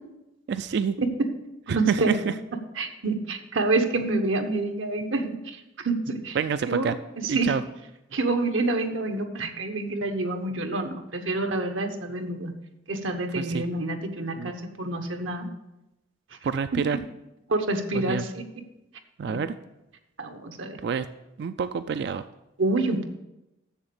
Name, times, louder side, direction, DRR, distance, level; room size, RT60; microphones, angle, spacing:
voice 1, 0.5-1.0 1.7-2.3 6.3-6.9 7.3-7.6 13.3-13.6 14.3-14.5 16.4-17.0 17.9-18.2 19.2-19.5 20.8-21.1 21.4-22.3, right 6 dB, 60° right, 12 dB, 0.3 m, -27 dB
voice 2, 1.0-1.3 1.7-2.2 2.8-6.4 6.7-7.0 7.2-7.5 8.1-12.5 12.9-15.5 17.5-18.4 19.3-19.4 20.2-20.8 22.6-23.1, right 2 dB, 85° right, 5 dB, 1.1 m, -27 dB
7.2 x 7.0 x 6.9 m, 0.95 s
head